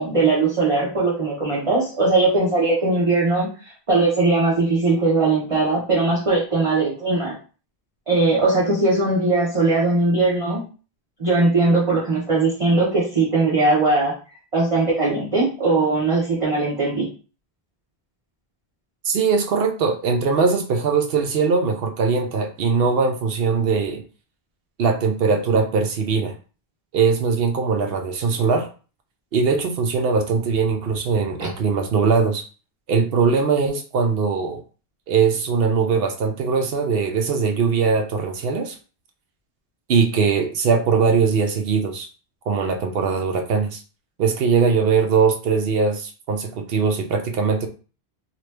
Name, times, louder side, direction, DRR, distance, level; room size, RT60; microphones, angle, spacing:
voice 1, 0.0-7.3 8.1-10.6 11.2-14.1 14.5-17.0 31.4-31.5, right 3 dB, 30° right, -7 dB, 1.0 m, -20 dB
voice 2, 19.0-24.0 24.8-26.3 26.9-28.7 29.3-32.4 32.9-34.6 35.1-38.8 39.9-42.1 42.5-43.8 44.2-47.7, right 5 dB, 65° right, 5 dB, 0.7 m, -21 dB
2.9 x 2.4 x 3.3 m, 0.37 s
omnidirectional pair, 1.1 m